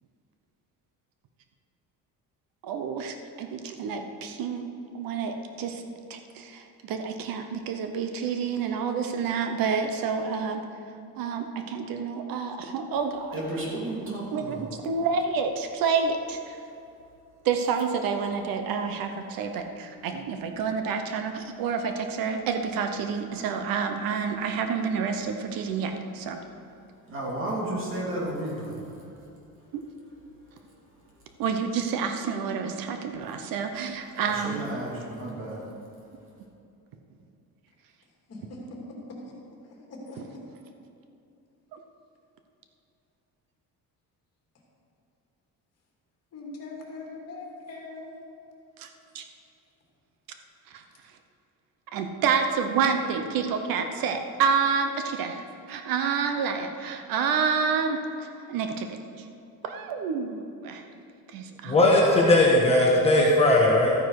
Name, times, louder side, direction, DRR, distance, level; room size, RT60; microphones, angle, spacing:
voice 1, 2.6-4.7 4.9-5.8 6.1-10.6 11.2-13.4 14.3-16.6 17.4-26.4 29.7-29.8 31.4-34.6 41.7-41.8 48.8-48.9 49.1-49.2 50.7-50.8 51.9-58.9 59.6-60.8 61.3-61.9, right 6 dB, 70° right, 6 dB, 0.9 m, -29 dB
voice 2, 13.3-14.6 27.1-28.8 34.4-35.6, right 1 dB, 35° right, -4 dB, 2.8 m, -32 dB
voice 3, 38.3-38.8 40.1-40.2 46.3-48.1 56.0-56.1, left 3 dB, 45° left, -2 dB, 2.6 m, -41 dB
voice 4, 61.7-63.9, left 1 dB, 15° left, -3 dB, 1.4 m, -19 dB
13.5 x 9.3 x 4.8 m, 2.7 s
cardioid pair, 175°, 36 cm